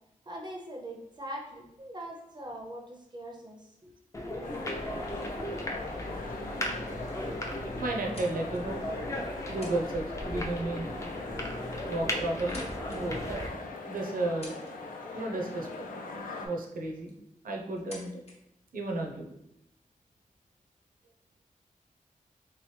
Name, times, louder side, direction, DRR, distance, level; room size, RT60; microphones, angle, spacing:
voice 1, 0.3-3.9, right 1 dB, 30° right, 0 dB, 0.5 m, -42 dB
sound 1, 1.0-3.6 4.5-4.6 4.9-5.1 5.7-6.0 6.3-6.4 6.7-7.2 7.7-8.9 9.4-9.9 10.2-10.5 11.5-11.6 12.1-13.0 13.6-13.7 14.2-15.0 16.3-16.4 16.9-17.2 17.7-18.3, left 2 dB, 45° left, 0.8 m, -52 dB
sound 2, 4.1-13.5, left 1 dB, 20° left, 0.4 m, -36 dB
sound 3, 4.4-16.5, left 3 dB, 80° left, 0.5 m, -41 dB
voice 2, 7.8-8.8 9.5-10.9 11.9-13.4 13.9-14.6 15.1-15.8 16.4-17.1 17.4-18.2 18.7-19.3, right 2 dB, 85° right, 0 dB, 0.7 m, -33 dB
3.4 x 3.0 x 3.1 m, 0.81 s
wide cardioid pair, 140°, 14 cm